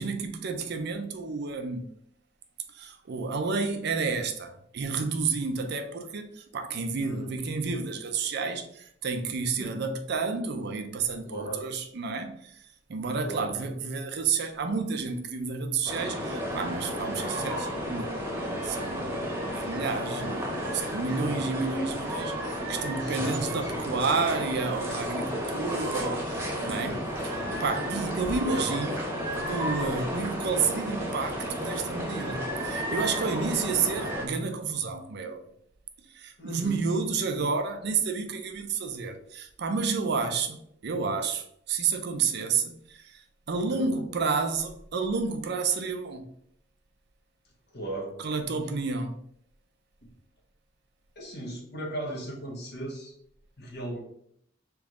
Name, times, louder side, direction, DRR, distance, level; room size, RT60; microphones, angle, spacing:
voice 1, 0.0-1.9 2.7-12.6 12.9-27.0 27.6-28.9 29.3-35.5 36.1-46.3 48.2-49.2, right 4 dB, 60° right, 0.5 m, -30 dB
voice 2, 7.0-7.4 9.6-9.7 11.2-11.7 13.2-13.6 22.9-23.8 26.8-27.2 28.4-28.7 36.4-36.8 43.7-44.0 47.7-48.1 50.0-50.1 51.1-53.1 53.6-54.0, right 1 dB, 60° left, 1.2 m, -37 dB
sound 1, 15.9-34.3, equal, 15° right, 1.0 m, -32 dB
3.6 x 3.0 x 3.7 m
head